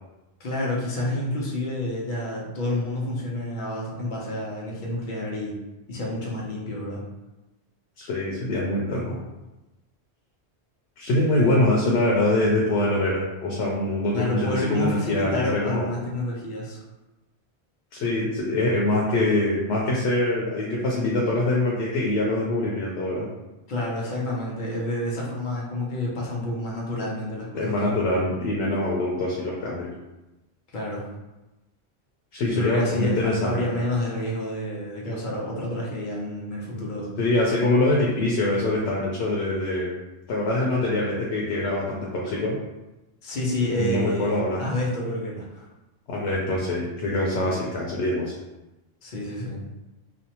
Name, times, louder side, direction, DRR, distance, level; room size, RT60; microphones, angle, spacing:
voice 1, 0.4-5.6 5.9-7.0 14.1-16.8 23.7-27.8 30.7-31.0 32.4-37.1 43.2-45.7 47.4-47.6 49.0-49.6, left 1 dB, 55° left, -3 dB, 0.8 m, -29 dB
voice 2, 8.0-9.2 11.0-15.9 17.9-23.3 27.5-29.9 32.3-33.6 37.2-39.9 40.3-42.6 43.8-44.6 46.1-48.3, left 1 dB, 90° left, -3 dB, 0.9 m, -24 dB
2.5 x 2.1 x 2.8 m, 1.0 s
omnidirectional pair, 1.1 m